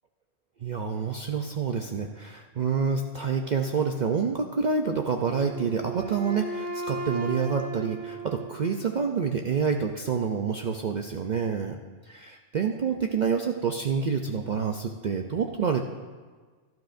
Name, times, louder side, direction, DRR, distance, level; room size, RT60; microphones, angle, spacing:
voice 1, 0.6-11.8 12.0-15.8, right 6 dB, 55° right, 4 dB, 0.5 m, -28 dB
Wind instrument woodwind instrument, 5.3-9.2, right 3 dB, 15° right, 1.8 m, -36 dB
16.5 x 12.0 x 2.6 m, 1.5 s
omnidirectional pair, 1.3 m